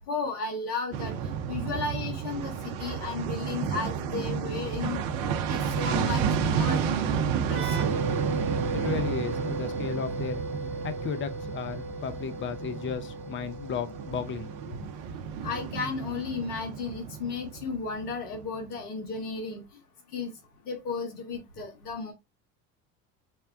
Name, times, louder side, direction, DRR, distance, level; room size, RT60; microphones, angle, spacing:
voice 1, 0.1-5.0 5.5-7.9 15.4-19.6 20.1-20.3 20.6-22.1, left 4 dB, 80° left, 1.4 m, -34 dB
sound 1, 0.9-18.4 18.7-18.8, right 7 dB, 50° right, 0.8 m, -31 dB
sound 2, 7.5-15.0, right 1 dB, 90° right, 0.7 m, -37 dB
voice 2, 8.7-10.4 10.8-14.7, left 6 dB, 25° left, 0.6 m, -34 dB
5.9 x 2.2 x 2.4 m
hypercardioid pair, 75°, 45 cm